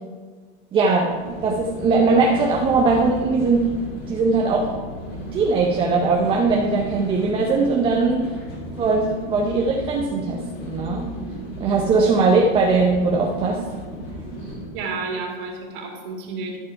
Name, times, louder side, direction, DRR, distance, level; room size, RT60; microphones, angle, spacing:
voice 1, 0.7-1.1 1.4-3.7 4.1-4.7 5.3-8.3 8.8-11.2 11.6-13.6, right 3 dB, 15° right, 0 dB, 0.6 m, -20 dB
sound 1, 1.1-14.7, right 1 dB, 65° left, 3.2 m, -34 dB
voice 2, 14.4-16.6, right 4 dB, 55° right, 1 dB, 2.2 m, -31 dB
13.5 x 4.6 x 5.7 m, 1.5 s
supercardioid pair, 155°, 32 cm